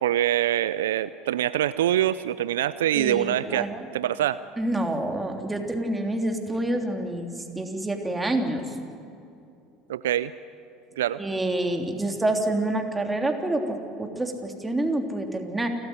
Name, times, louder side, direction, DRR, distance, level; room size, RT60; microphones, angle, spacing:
voice 1, 0.0-3.7 3.9-4.4 9.9-10.3 11.0-11.2, right 12 dB, 75° right, 16 dB, 0.5 m, -24 dB
voice 2, 2.9-3.9 4.6-8.7 11.2-15.7, right 1 dB, 15° right, 4 dB, 3.3 m, -27 dB
28.5 x 13.5 x 9.9 m, 2.6 s
hypercardioid pair, 70°, 0 cm